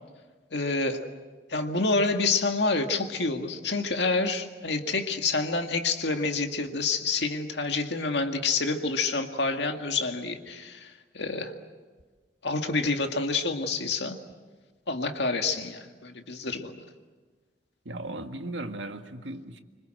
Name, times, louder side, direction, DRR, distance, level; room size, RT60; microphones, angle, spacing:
voice 1, 0.5-1.1 1.5-11.5 12.4-14.2 14.9-16.8, left 3 dB, 65° left, 5 dB, 2.0 m, -28 dB
voice 2, 17.8-19.6, right 2 dB, 85° right, 6 dB, 1.8 m, -37 dB
26.0 x 25.5 x 7.8 m, 1.4 s
head